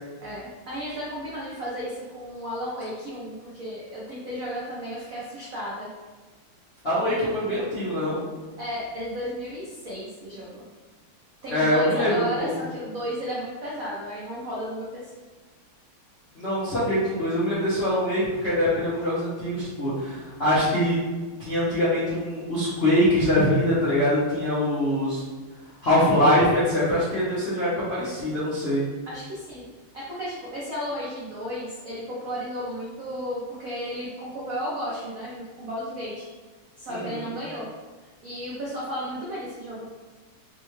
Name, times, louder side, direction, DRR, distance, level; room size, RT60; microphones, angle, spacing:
voice 1, 0.2-5.9 8.6-10.7 11.4-15.2 27.5-27.8 29.0-29.7 29.9-36.3 36.8-37.7 38.2-39.9, equal, 75° right, -6 dB, 0.7 m, -34 dB
voice 2, 6.8-8.2 11.5-12.5 16.3-21.0 21.4-25.2 25.8-28.8 36.9-37.2, left 1 dB, 65° left, -11 dB, 0.6 m, -23 dB
4.2 x 2.2 x 3.0 m, 1.3 s
omnidirectional pair, 2.4 m